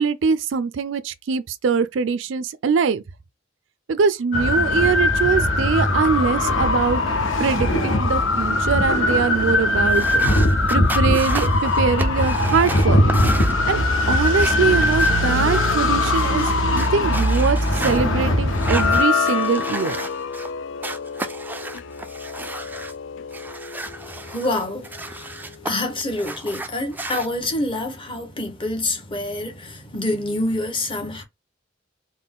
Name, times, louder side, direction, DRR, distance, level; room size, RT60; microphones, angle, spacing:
voice 1, 0.0-3.0 3.9-7.0 7.4-10.2 10.7-13.2 13.7-20.1, right 5 dB, 70° right, 0.4 m, -23 dB
sound 1, 4.3-19.0, left 1 dB, 90° left, 1.0 m, -20 dB
sound 2, 9.8-18.0 18.5-20.5 20.8-22.9 23.3-25.7 26.0-27.3, right 2 dB, 10° right, 0.4 m, -33 dB
sound 3, 18.5-24.9, left 5 dB, 70° left, 0.4 m, -27 dB
voice 2, 24.0-31.2, left 1 dB, 25° left, 1.1 m, -27 dB
4.0 x 2.2 x 3.7 m
head